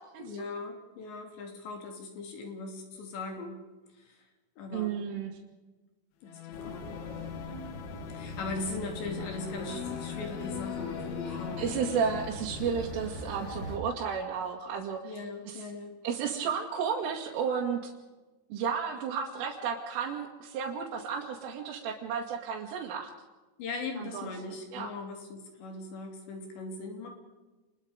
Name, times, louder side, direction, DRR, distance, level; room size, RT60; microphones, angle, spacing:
voice 1, 0.2-3.6 4.0-4.2 4.6-4.9 6.2-7.0 8.1-11.7 15.0-15.9 23.6-27.1, left 3 dB, 65° left, 3 dB, 5.1 m, -39 dB
voice 2, 4.7-5.3 11.6-15.1 15.5-15.6 16.0-17.9 18.5-23.1 24.0-24.9, right 7 dB, 80° right, -2 dB, 4.7 m, -33 dB
sound 1, 6.2-12.3, left 13 dB, 90° left, 2.1 m, -41 dB
sound 2, 6.5-13.8, left 1 dB, 25° left, 3.8 m, -41 dB
28.5 x 21.0 x 5.2 m, 1.2 s
omnidirectional pair, 5.6 m